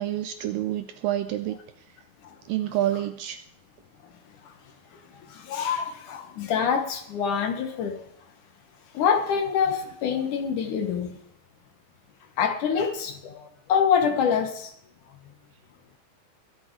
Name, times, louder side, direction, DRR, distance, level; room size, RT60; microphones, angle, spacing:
voice 1, 0.0-1.6 2.5-3.4, right 13 dB, 80° right, 10 dB, 2.0 m, -28 dB
voice 2, 5.3-8.0 8.9-11.2 12.4-14.7, left 7 dB, 65° left, 7 dB, 2.3 m, -25 dB
23.0 x 8.0 x 4.6 m, 0.70 s
omnidirectional pair, 4.5 m